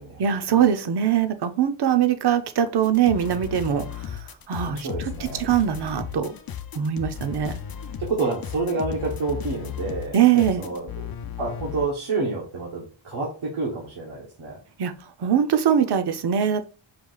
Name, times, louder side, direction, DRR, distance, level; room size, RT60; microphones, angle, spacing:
voice 1, 0.2-3.8 4.5-4.9 5.4-6.3 6.7-7.6 10.1-10.6 14.8-14.9 15.2-16.6, right 9 dB, 55° right, 9 dB, 0.7 m, -21 dB
sound 1, 2.8-11.9, left 8 dB, 50° left, 0.6 m, -35 dB
voice 2, 4.6-5.5 8.0-10.2 10.6-14.6, right 3 dB, 90° right, -4 dB, 1.2 m, -29 dB
4.7 x 2.3 x 3.8 m, 0.38 s
cardioid pair, 55°, 48 cm